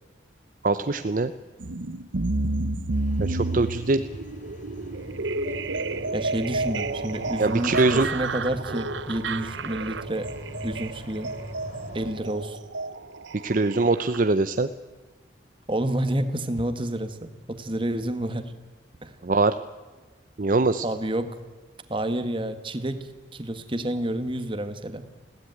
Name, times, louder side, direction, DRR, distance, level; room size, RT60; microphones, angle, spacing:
voice 1, 0.6-1.3 3.2-4.1 7.4-8.1 13.4-14.7 19.2-19.5 20.4-20.8, right 3 dB, 45° right, 10 dB, 0.6 m, -22 dB
sound 1, 1.6-14.2, right 2 dB, 80° right, 0.9 m, -31 dB
sound 2, 2.9-12.1, equal, 40° left, 4.5 m, -41 dB
voice 2, 6.1-10.3 10.6-11.3 11.9-12.6 15.7-18.5 19.0-19.1 20.8-21.3 21.9-23.0 23.3-25.0, right 1 dB, 25° right, 9 dB, 1.5 m, -29 dB
21.0 x 16.5 x 9.2 m, 1.3 s
head